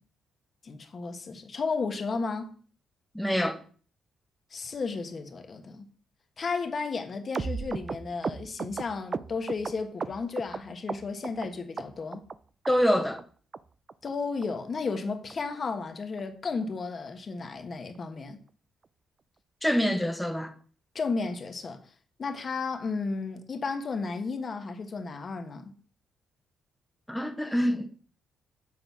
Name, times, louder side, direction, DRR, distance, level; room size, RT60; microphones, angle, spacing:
voice 1, 0.6-2.5 4.5-5.8 6.4-12.2 14.0-18.4 20.9-21.8 22.2-25.7, left 4 dB, 40° left, 1.3 m, -33 dB
voice 2, 3.1-3.6 12.7-13.2 19.6-20.5 27.1-27.9, equal, 5° left, 1.1 m, -25 dB
sound 1, 7.3-10.6 10.9-11.5 11.8-12.3 12.6-12.7 13.0-13.2 13.5-13.6 13.9-14.1 14.4-14.5 14.8-15.0 15.3-15.4 15.6-15.8 16.2-16.3 16.5-16.7 17.1-17.2, right 5 dB, 35° right, 0.4 m, -35 dB
7.7 x 3.9 x 6.0 m
cardioid pair, 90°, 0 cm